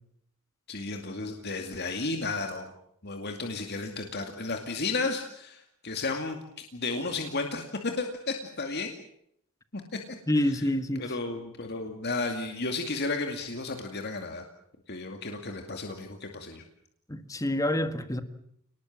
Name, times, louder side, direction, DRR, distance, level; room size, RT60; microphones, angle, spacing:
voice 1, 0.7-2.7 3.0-8.9 9.7-9.8 11.0-14.4 14.9-16.6, left 3 dB, 50° left, 2.4 m, -33 dB
voice 2, 10.3-11.0 17.1-18.2, left 1 dB, 15° left, 1.6 m, -27 dB
28.5 x 19.5 x 7.4 m
head